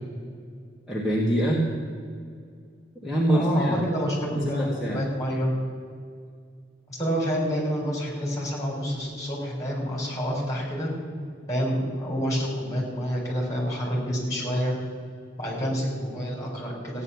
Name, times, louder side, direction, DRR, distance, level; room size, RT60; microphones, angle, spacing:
voice 1, 0.9-1.6 3.0-3.8 4.3-5.0, right 1 dB, ahead, -5 dB, 1.7 m, -25 dB
voice 2, 3.3-5.5 6.9-10.9 11.5-14.8 15.4-17.0, equal, 20° left, -2 dB, 4.3 m, -28 dB
15.0 x 9.6 x 7.1 m, 2.2 s
head